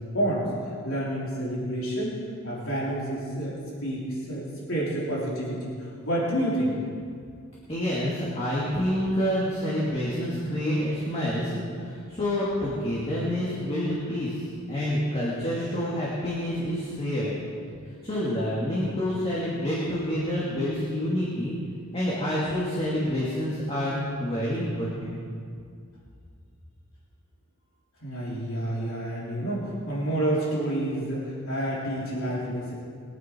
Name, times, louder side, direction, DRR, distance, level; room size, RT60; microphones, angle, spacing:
voice 1, 0.0-2.1 2.4-6.8 28.0-32.7, right 1 dB, 70° left, -6 dB, 3.4 m, -29 dB
voice 2, 7.7-14.4 14.7-17.4 18.0-21.5 21.9-25.2, equal, 30° left, -7 dB, 2.4 m, -28 dB
22.0 x 9.0 x 4.6 m, 2.2 s
head